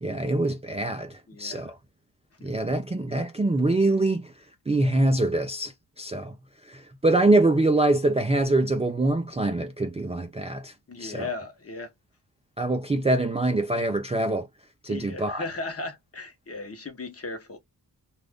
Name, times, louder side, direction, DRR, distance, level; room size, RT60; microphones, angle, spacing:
voice 1, 0.0-1.7 2.4-4.3 4.7-5.7 6.0-6.3 6.7-10.7 11.0-11.3 12.6-14.5 14.8-15.5, right 2 dB, 15° right, 0.4 m, -24 dB
voice 2, 1.3-1.7 2.4-2.5 10.9-11.9 14.9-17.6, left 3 dB, 35° left, 0.9 m, -36 dB
2.5 x 2.4 x 3.4 m
wide cardioid pair, 85°, 40 cm